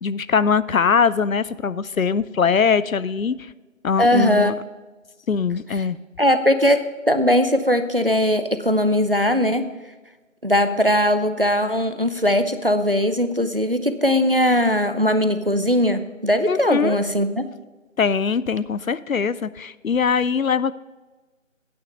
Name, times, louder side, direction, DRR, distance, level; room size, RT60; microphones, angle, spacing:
voice 1, 0.0-3.5 3.8-4.5 5.3-6.0 16.5-17.0 18.0-20.7, left 6 dB, 80° left, 17 dB, 0.6 m, -21 dB
voice 2, 4.0-4.5 6.2-9.7 10.4-17.5, left 1 dB, 45° right, 10 dB, 0.6 m, -19 dB
9.5 x 8.8 x 5.5 m, 1.2 s
figure-of-eight pair, 180°, 40 cm